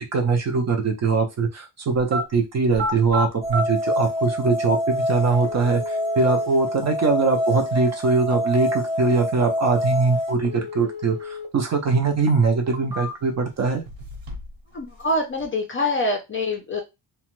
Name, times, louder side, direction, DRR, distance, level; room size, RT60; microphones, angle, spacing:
voice 1, 0.1-13.8, right 4 dB, 35° right, 4 dB, 0.4 m, -22 dB
sound 1, 1.9-2.2 2.7-3.6 4.6-4.7 5.4-6.5 10.4-11.5 11.9-12.0 12.6-13.4 13.8-14.6 14.9-15.4, left 1 dB, 60° right, 1.0 m, -31 dB
sound 2, 3.4-10.3, equal, ahead, 0.7 m, -26 dB
voice 2, 14.7-16.8, left 2 dB, 25° left, 2 dB, 0.4 m, -25 dB
2.8 x 2.2 x 2.9 m, 0.22 s
cardioid pair, 175°, 48 cm